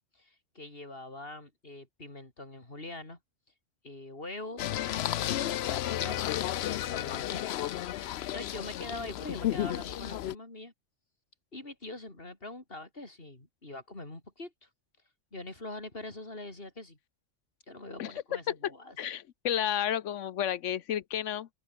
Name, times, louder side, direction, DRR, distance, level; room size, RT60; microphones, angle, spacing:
voice 1, 0.1-3.2 3.8-4.6 5.2-8.0 8.3-10.7 11.5-14.7 15.3-17.0 17.7-19.0, left 2 dB, 50° left, 4.6 m, -43 dB
Singing, 4.6-10.3, left 12 dB, 65° left, 0.8 m, -32 dB
voice 2, 19.0-21.5, left 10 dB, 85° left, 1.1 m, -31 dB
open air
omnidirectional pair, 1.2 m